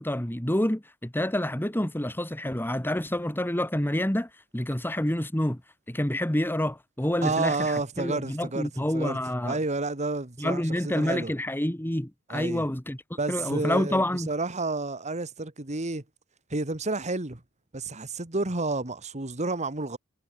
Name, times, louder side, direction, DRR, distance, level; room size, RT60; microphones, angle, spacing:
voice 1, 0.0-5.6 5.9-9.6 10.4-13.0 13.3-14.3, left 1 dB, 10° left, 1.5 m, -28 dB
voice 2, 7.2-9.2 9.4-11.3 12.3-12.7 13.2-16.0 16.5-17.4 17.7-20.0, right 3 dB, 30° right, 1.7 m, -30 dB
head